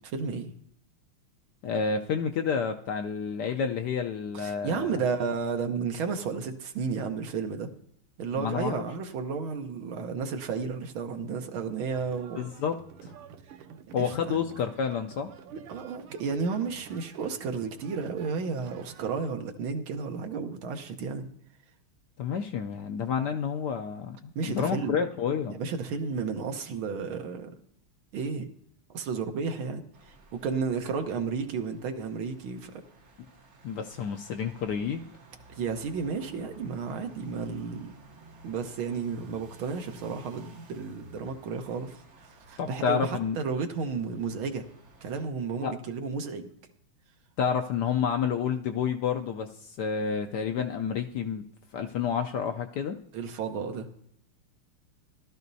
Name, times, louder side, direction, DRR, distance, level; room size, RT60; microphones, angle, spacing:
voice 1, 0.1-0.5 4.3-7.7 8.2-12.4 14.0-14.4 15.5-21.3 24.4-25.0 25.5-27.5 28.1-28.5 28.9-32.8 35.5-37.9 38.4-44.6 45.0-46.5 53.1-53.9, right 5 dB, 70° right, 6 dB, 1.8 m, -32 dB
voice 2, 1.6-5.0 8.3-8.8 12.4-13.1 13.9-15.3 22.2-25.5 33.6-35.0 42.6-43.4 45.6-45.7 47.4-51.5 51.7-53.0, left 6 dB, 75° left, 5 dB, 0.9 m, -29 dB
sound 1, 11.9-19.2, right 7 dB, 90° right, 1.6 m, -49 dB
sound 2, 29.9-45.3, right 2 dB, 45° right, 1.0 m, -54 dB
16.5 x 12.5 x 2.7 m, 0.71 s
omnidirectional pair, 2.4 m